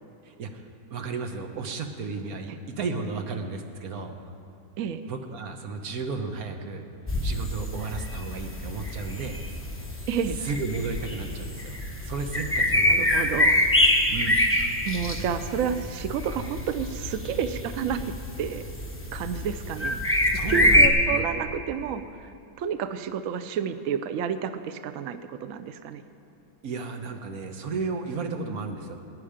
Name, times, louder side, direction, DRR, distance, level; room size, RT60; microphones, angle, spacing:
voice 1, 0.2-0.6 0.9-4.1 5.0-6.8 7.2-9.4 10.4-11.8 12.0-13.3 14.1-14.4 20.3-21.3 26.6-28.9, right 4 dB, 55° right, 5 dB, 1.3 m, -33 dB
sound 1, 7.1-20.9, left 1 dB, 15° left, 0.4 m, -25 dB
voice 2, 10.1-10.4 12.9-13.7 14.8-18.0 18.4-18.6 19.1-20.0 20.5-22.3 22.6-26.0, right 7 dB, 85° right, 10 dB, 0.7 m, -30 dB
19.5 x 9.7 x 5.0 m, 2.5 s
omnidirectional pair, 2.1 m